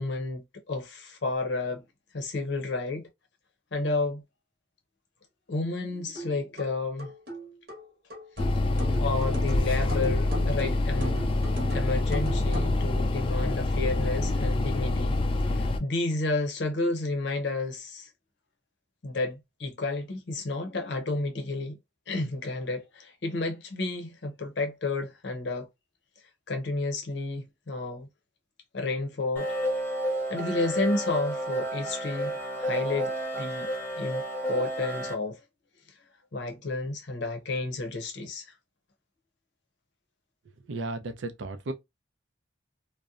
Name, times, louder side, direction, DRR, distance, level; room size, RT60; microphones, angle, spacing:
voice 1, 0.0-1.8 2.1-3.1 3.7-4.2 5.5-7.1 9.0-11.2 11.7-15.1 15.4-18.1 19.0-21.8 22.1-25.7 26.5-28.1 28.7-29.5 30.3-33.7 34.0-35.4 36.3-38.5, left 2 dB, 65° left, 0.6 m, -31 dB
sound 1, 6.1-12.8, equal, 55° right, 0.9 m, -38 dB
sound 2, 8.4-15.8, left 2 dB, 30° left, 0.3 m, -26 dB
sound 3, 29.4-35.1, right 1 dB, 10° left, 0.8 m, -31 dB
voice 2, 40.6-41.7, right 2 dB, 80° right, 0.5 m, -34 dB
2.7 x 2.1 x 2.4 m
head